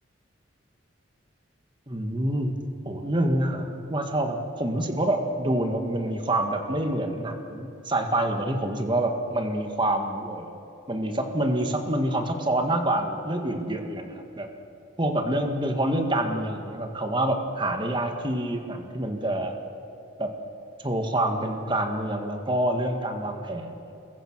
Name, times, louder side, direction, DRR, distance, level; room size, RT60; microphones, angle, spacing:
voice 1, 1.9-2.6 2.9-10.5 10.9-14.5 15.0-19.5 20.2-20.3 20.8-23.9, right 1 dB, 25° right, 5 dB, 1.8 m, -27 dB
29.0 x 21.5 x 6.2 m, 2.7 s
head